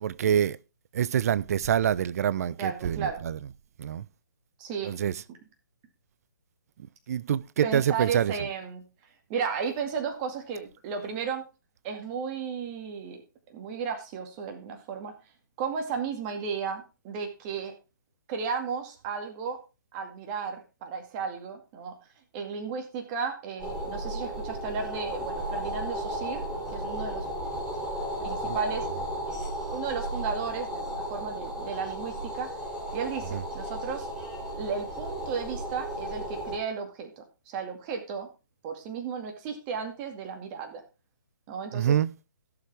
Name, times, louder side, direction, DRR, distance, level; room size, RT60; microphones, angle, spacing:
voice 1, 0.0-0.6 0.9-3.4 3.8-4.0 4.8-5.2 7.1-8.3 28.4-28.6 33.3-33.4 41.7-42.1, right 9 dB, 45° right, 0.5 m, -26 dB
voice 2, 2.6-3.2 4.6-4.9 7.6-8.8 9.3-11.4 11.8-13.2 13.5-15.1 15.6-17.7 18.3-19.6 19.9-22.0 22.3-26.4 26.7-27.3 28.2-28.9 29.7-32.5 32.9-34.1 34.6-38.3 38.6-40.8 41.5-42.0, right 6 dB, 30° right, 2.2 m, -34 dB
sound 1, 23.6-36.6, right 1 dB, 5° right, 3.0 m, -34 dB
16.5 x 6.8 x 3.5 m
figure-of-eight pair, 140°, 11 cm